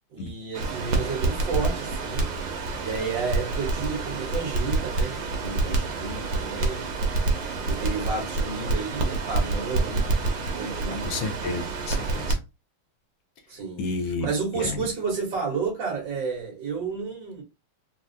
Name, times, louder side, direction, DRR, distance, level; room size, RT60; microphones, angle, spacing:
voice 1, 0.1-2.3 2.8-6.9 7.6-10.1 10.5-11.3 13.5-17.4, right 5 dB, 65° right, 1.9 m, -31 dB
Crackle, 0.5-12.3, right 3 dB, 85° right, 1.7 m, -27 dB
voice 2, 11.0-12.4 13.8-14.3 14.6-14.9, left 3 dB, 75° left, 1.3 m, -31 dB
4.5 x 2.0 x 2.6 m
omnidirectional pair, 2.3 m